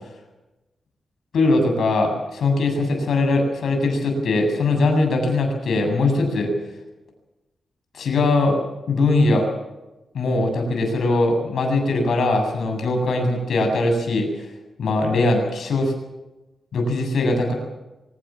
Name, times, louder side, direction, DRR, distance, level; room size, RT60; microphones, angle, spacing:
voice 1, 1.3-6.5 7.9-8.6 8.9-9.5 10.1-14.4 14.8-15.9 16.7-17.5, left 2 dB, 75° left, 4 dB, 7.9 m, -21 dB
24.5 x 19.5 x 7.3 m, 1.0 s
wide cardioid pair, 150°, 0 cm